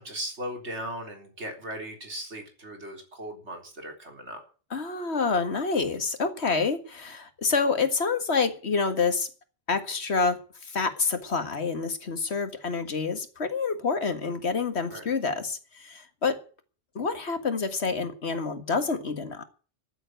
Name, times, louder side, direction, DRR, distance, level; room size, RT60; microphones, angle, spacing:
voice 1, 0.0-4.4 14.9-15.1, right 1 dB, 75° right, 4.1 m, -38 dB
voice 2, 4.7-9.3 9.7-16.4 17.0-19.4, left 4 dB, 70° left, 2.0 m, -27 dB
14.0 x 7.8 x 9.1 m
omnidirectional pair, 1.2 m